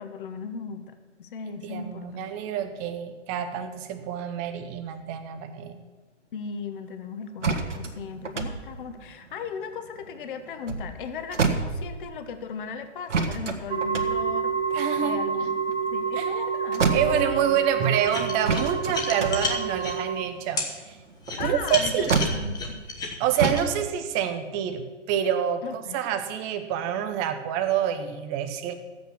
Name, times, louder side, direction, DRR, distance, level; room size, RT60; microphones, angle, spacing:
voice 1, 0.0-2.3 6.3-14.5 15.0-15.6 15.9-17.6 21.4-22.8 25.6-26.0, left 6 dB, 45° left, 9 dB, 1.1 m, -37 dB
voice 2, 1.6-5.8 7.4-7.5 14.7-15.2 16.1-16.3 16.9-21.0 21.4-22.2 23.2-28.7, right 9 dB, 15° right, 8 dB, 0.6 m, -27 dB
sound 1, 7.4-10.1 10.5-12.3 13.1-16.4 16.7-17.7 18.4-23.0 23.4-23.7, right 4 dB, 75° right, 1.6 m, -29 dB
sound 2, 13.7-20.2, right 6 dB, 45° right, 1.9 m, -28 dB
sound 3, 18.1-20.0 20.6-20.7 21.2-23.6, left 3 dB, 10° left, 1.0 m, -31 dB
13.0 x 8.3 x 6.2 m, 1.3 s
figure-of-eight pair, 135°, 36 cm